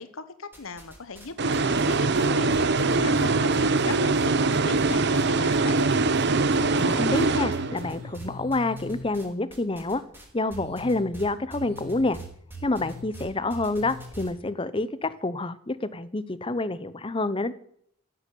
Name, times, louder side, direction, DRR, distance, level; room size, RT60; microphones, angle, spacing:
voice 1, 0.0-5.8, left 4 dB, 75° left, 12 dB, 1.2 m, -38 dB
sound 1, 0.5-1.3 1.5-5.3 5.5-6.3 6.5-14.3, right 1 dB, 10° right, 5.2 m, -41 dB
sound 2, 1.4-8.1, right 3 dB, 55° right, 0.9 m, -23 dB
voice 2, 6.7-10.0 10.3-12.2 12.6-17.5, left 2 dB, 25° left, 15 dB, 0.8 m, -28 dB
15.5 x 8.5 x 8.5 m, 0.66 s
head